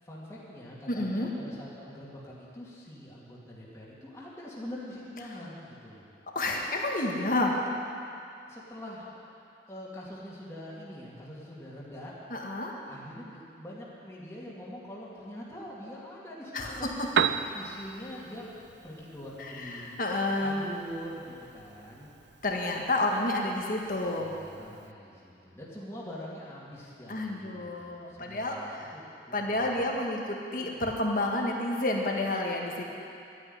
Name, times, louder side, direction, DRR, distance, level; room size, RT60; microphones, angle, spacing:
voice 1, 0.0-6.0 8.5-9.1 9.7-12.1 12.9-17.0 17.5-18.5 18.8-20.0 20.4-22.1 24.2-29.8, equal, 15° left, -7 dB, 2.5 m, -44 dB
voice 2, 0.9-1.3 6.3-7.5 12.3-12.7 16.5-16.9 19.4-20.6 22.4-24.3 27.1-28.9 29.3-32.8, left 2 dB, 50° left, 0 dB, 1.8 m, -30 dB
Piano, 16.9-24.9, right 7 dB, 80° right, 0.4 m, -37 dB
12.0 x 9.5 x 9.5 m, 2.6 s
head